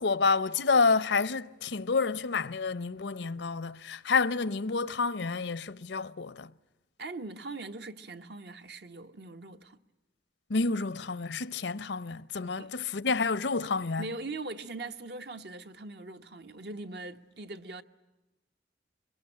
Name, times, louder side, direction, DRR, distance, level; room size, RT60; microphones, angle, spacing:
voice 1, 0.0-6.5 10.5-14.1, left 4 dB, 85° left, 0.8 m, -29 dB
voice 2, 7.0-9.8 12.6-12.7 14.0-17.8, right 2 dB, 65° right, 1.2 m, -41 dB
23.5 x 21.0 x 9.9 m
head